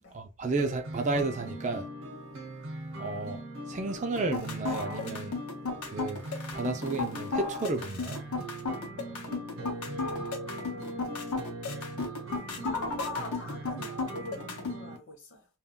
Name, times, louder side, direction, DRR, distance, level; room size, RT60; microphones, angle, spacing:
voice 1, 0.1-1.8 3.0-3.4 3.7-5.3 5.8-6.2 6.5-8.3, right 3 dB, 30° right, 0.3 m, -32 dB
sound 1, 0.6-15.0, right 1 dB, 60° right, 0.7 m, -41 dB
sound 2, 4.2-14.8, left 4 dB, 85° left, 0.7 m, -34 dB
voice 2, 8.9-9.3 9.6-15.5, left 1 dB, 55° left, 0.8 m, -43 dB
2.2 x 2.2 x 3.5 m
head